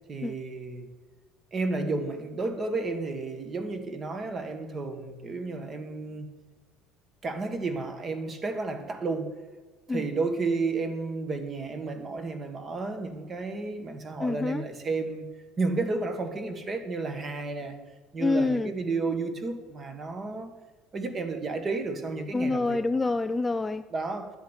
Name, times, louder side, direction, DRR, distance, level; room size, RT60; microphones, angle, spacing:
voice 1, 0.1-0.9 1.5-6.3 7.2-9.3 9.9-15.3 15.6-17.8 18.1-20.5 20.9-22.8 23.9-24.3, right 3 dB, 25° right, 1.6 m, -32 dB
voice 2, 14.2-14.6 18.2-18.7 22.3-23.8, left 3 dB, 10° left, 0.3 m, -27 dB
11.0 x 8.1 x 8.1 m
cardioid pair, 155°, 0 cm